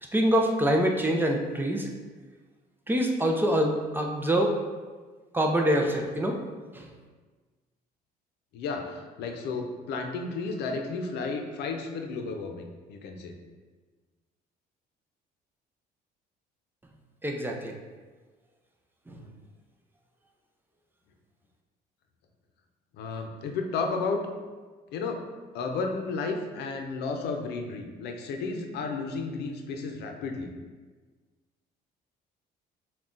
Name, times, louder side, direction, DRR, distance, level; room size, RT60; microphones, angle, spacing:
voice 1, 0.1-1.9 2.9-4.6 5.3-6.4 6.7-6.9 17.2-17.7 19.1-19.2, equal, 10° right, 1 dB, 0.5 m, -25 dB
voice 2, 8.5-13.4 19.1-19.3 23.0-24.2 24.9-25.2 25.5-30.5, left 4 dB, 80° left, 4 dB, 0.6 m, -33 dB
6.0 x 2.3 x 3.7 m, 1.4 s
cardioid pair, 110°, 17 cm